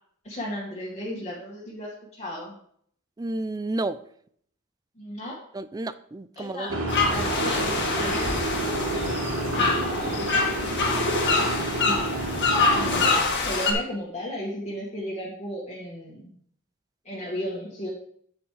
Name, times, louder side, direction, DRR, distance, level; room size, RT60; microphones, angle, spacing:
voice 1, 0.2-2.6 5.0-5.4 6.4-8.3 9.3-10.4 11.8-12.0 12.7-16.3 17.0-17.9, equal, 30° left, -5 dB, 2.0 m, -35 dB
voice 2, 3.2-4.0 5.5-6.8, right 2 dB, 15° right, 14 dB, 0.4 m, -31 dB
sound 1, 6.7-13.1, right 2 dB, 75° right, 3.1 m, -29 dB
sound 2, 6.9-13.7, left 4 dB, 55° left, 2.0 m, -25 dB
9.2 x 8.5 x 3.3 m, 0.64 s
head